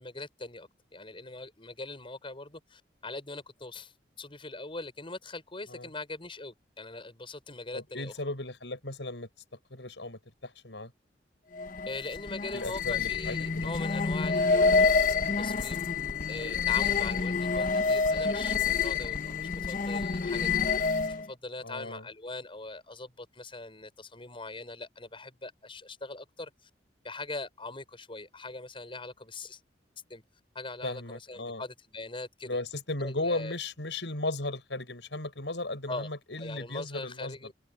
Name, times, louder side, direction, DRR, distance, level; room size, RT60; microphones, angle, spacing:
voice 1, 0.0-8.1 11.9-14.9 15.4-15.9 16.3-20.5 21.0-26.7 27.0-29.6 30.1-30.2 30.5-32.6 33.0-33.6 35.9-37.5, left 2 dB, 30° left, 6.3 m, -41 dB
voice 2, 7.7-9.3 9.7-10.9 12.5-13.7 17.3-17.4 21.6-22.0 30.8-31.6 32.4-37.4, left 2 dB, 80° left, 7.2 m, -36 dB
sound 1, 11.5-21.3, left 4 dB, 50° left, 1.1 m, -28 dB
open air
head